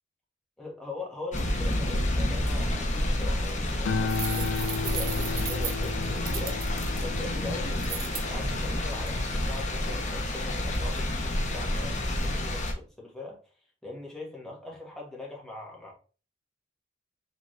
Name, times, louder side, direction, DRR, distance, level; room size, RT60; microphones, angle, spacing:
voice 1, 0.6-6.7 7.0-13.4 13.8-15.9, left 2 dB, 5° left, 1.5 m, -41 dB
sound 1, 1.3-12.7, left 1 dB, 40° left, 0.9 m, -29 dB
sound 2, 3.8-10.4 10.8-11.3, left 4 dB, 90° left, 0.5 m, -35 dB
sound 3, 4.1-6.9 7.8-8.2, right 9 dB, 50° right, 0.6 m, -36 dB
4.0 x 3.6 x 3.2 m
head